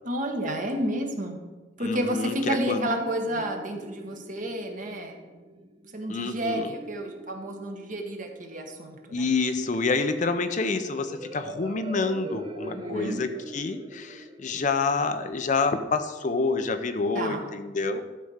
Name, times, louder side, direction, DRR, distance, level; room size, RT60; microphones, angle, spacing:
voice 1, 0.0-1.4 1.8-5.5 5.9-9.2 12.7-13.2 17.1-17.4, right 1 dB, 45° right, 3 dB, 1.3 m, -31 dB
voice 2, 1.8-2.9 6.1-6.7 9.1-18.0, left 4 dB, 40° left, 9 dB, 0.6 m, -28 dB
sound 1, 2.4-16.0, right 1 dB, 25° right, 0.6 m, -43 dB
12.0 x 4.2 x 6.5 m, 1.2 s
head